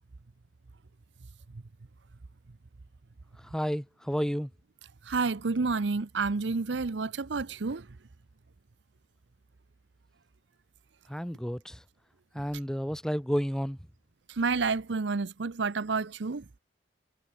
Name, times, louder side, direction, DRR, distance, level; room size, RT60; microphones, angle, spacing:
voice 1, 3.4-4.5 11.1-11.8 12.3-13.8, equal, 5° left, 2.5 m, -31 dB
voice 2, 5.1-7.9 14.3-16.4, right 4 dB, 75° right, 0.7 m, -29 dB
head